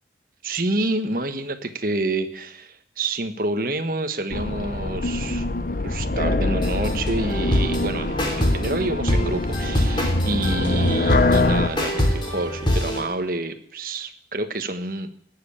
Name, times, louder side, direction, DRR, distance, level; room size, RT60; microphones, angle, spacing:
voice 1, 0.4-5.4 5.8-15.1, right 2 dB, 50° right, 8 dB, 1.4 m, -28 dB
sound 1, 4.3-11.7, left 2 dB, 50° left, 0.8 m, -24 dB
sound 2, 6.6-13.0, equal, 25° left, 3.3 m, -25 dB
19.0 x 7.8 x 8.7 m, 0.69 s
head